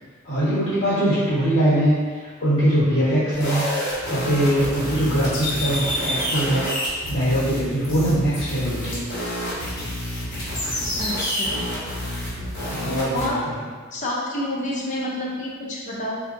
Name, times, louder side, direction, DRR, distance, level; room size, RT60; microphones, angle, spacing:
voice 1, 0.2-3.7 4.1-6.7 7.1-9.0 12.7-13.6, right 1 dB, 80° left, -12 dB, 1.3 m, -22 dB
sound 1, 3.3-13.2, equal, 60° left, 1.4 m, -28 dB
voice 2, 11.0-11.6 13.1-13.4 13.9-16.2, left 1 dB, 40° left, -4 dB, 0.6 m, -28 dB
3.5 x 2.6 x 2.5 m, 1.5 s
head